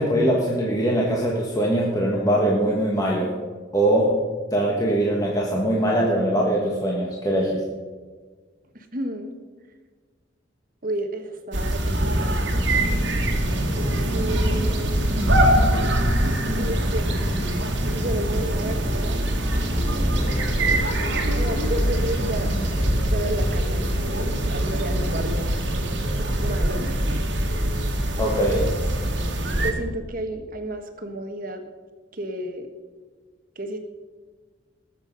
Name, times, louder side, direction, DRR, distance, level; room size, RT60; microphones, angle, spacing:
voice 1, 0.0-3.3 3.7-4.2 4.5-7.6 28.2-28.7, right 1 dB, 20° left, -3 dB, 1.5 m, -22 dB
voice 2, 8.7-9.4 10.8-12.5 14.1-15.2 16.5-17.1 17.7-19.3 21.3-22.6 23.1-25.6 26.4-27.1 29.6-31.6 32.1-32.7 33.5-33.8, right 1 dB, 45° right, 6 dB, 1.4 m, -32 dB
sound 1, 11.5-29.7, right 1 dB, 70° right, 1.9 m, -23 dB
sound 2, 11.9-20.8, equal, 15° right, 1.2 m, -32 dB
sound 3, 20.2-27.2, left 1 dB, 45° left, 1.5 m, -39 dB
19.5 x 7.5 x 5.4 m, 1.4 s
head